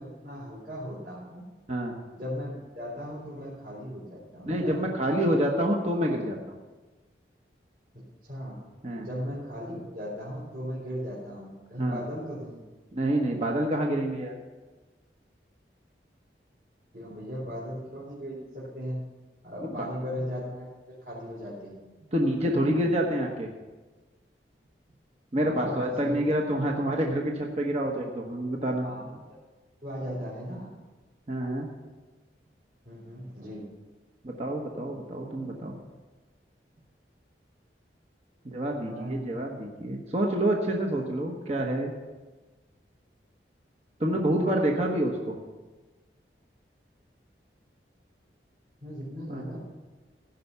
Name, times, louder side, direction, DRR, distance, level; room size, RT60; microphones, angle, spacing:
voice 1, 0.0-1.4 2.1-5.3 7.9-8.6 9.0-12.6 16.9-19.1 19.4-21.8 25.4-26.2 28.8-29.4 29.8-30.7 32.8-33.7 38.8-39.3 48.8-49.6, equal, 55° right, -8 dB, 3.8 m, -37 dB
voice 2, 4.5-6.4 8.8-9.1 11.8-12.0 12.9-14.3 19.6-19.9 22.1-23.5 25.3-28.9 31.3-31.7 34.2-35.8 38.4-41.9 44.0-45.4 49.3-49.4, right 1 dB, 35° right, 0 dB, 1.1 m, -27 dB
16.0 x 5.5 x 6.9 m, 1.2 s
head